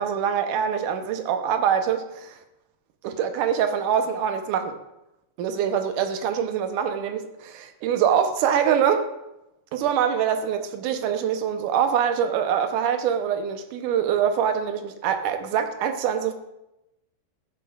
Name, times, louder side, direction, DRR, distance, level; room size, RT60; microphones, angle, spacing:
voice 1, 0.0-2.4 3.0-4.8 5.4-9.1 9.7-16.3, right 8 dB, 80° right, 7 dB, 2.3 m, -24 dB
14.0 x 10.5 x 2.3 m, 0.90 s
omnidirectional pair, 3.6 m